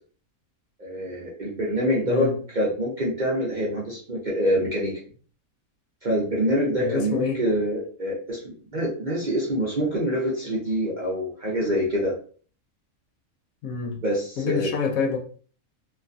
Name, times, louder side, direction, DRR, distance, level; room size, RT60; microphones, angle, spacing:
voice 1, 0.8-2.3 2.5-5.0 6.0-12.1 14.0-14.7, equal, 45° right, 0.6 m, -25 dB
voice 2, 6.8-7.4 13.6-14.0 14.4-15.2, left 5 dB, 75° left, 1.0 m, -27 dB
3.1 x 2.2 x 2.5 m
omnidirectional pair, 1.5 m